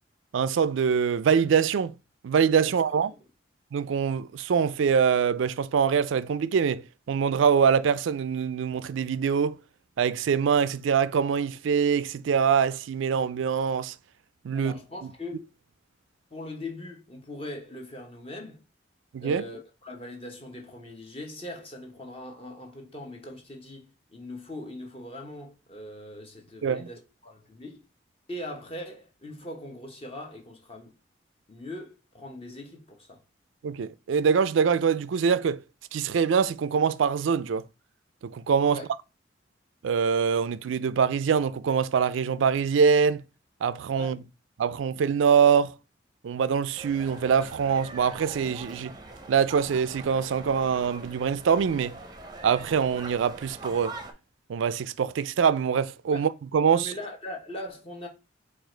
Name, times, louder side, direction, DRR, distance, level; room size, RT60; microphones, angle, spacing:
voice 1, 0.3-1.9 2.2-3.1 3.7-9.6 10.0-13.9 14.4-14.7 19.1-19.4 26.6-26.9 33.6-35.6 35.9-37.6 38.2-38.8 39.8-43.2 43.6-44.2 44.6-45.7 46.2-48.9 49.3-52.0 52.4-53.9 54.5-56.9, right 6 dB, 85° right, 0.4 m, -24 dB
voice 2, 14.5-15.4 16.3-18.6 19.2-27.8 28.3-30.9 31.5-33.2 38.7-38.9 44.0-44.1 56.1-56.3 56.7-58.1, left 1 dB, 30° left, 0.9 m, -40 dB
sound 1, 46.7-54.1, right 2 dB, 20° right, 0.6 m, -43 dB
4.6 x 2.4 x 4.4 m
head